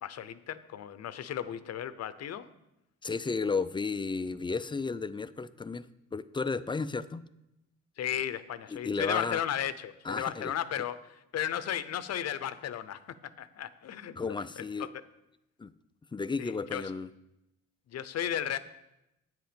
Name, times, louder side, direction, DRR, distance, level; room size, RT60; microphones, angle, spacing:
voice 1, 0.0-2.5 8.0-13.0 13.4-14.9 16.4-16.8 17.9-18.6, left 10 dB, 60° left, 14 dB, 0.7 m, -35 dB
voice 2, 3.0-5.9 6.1-7.2 8.7-9.4 10.0-10.8 14.2-14.9 15.6-15.7 16.1-17.1, left 4 dB, 15° left, 14 dB, 0.4 m, -33 dB
9.2 x 7.8 x 5.1 m, 0.89 s
cardioid pair, 90°, 30 cm